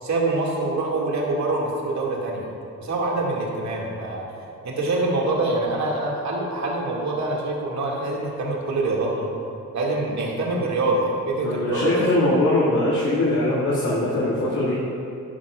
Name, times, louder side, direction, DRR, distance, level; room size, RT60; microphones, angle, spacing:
voice 1, 0.0-2.5 2.8-4.3 4.6-9.3 9.7-12.1, right 2 dB, 60° right, -2 dB, 2.2 m, -25 dB
voice 2, 11.4-14.8, left 1 dB, 70° left, -10 dB, 2.1 m, -21 dB
11.0 x 10.5 x 2.4 m, 2.8 s
cardioid pair, 70°, 31 cm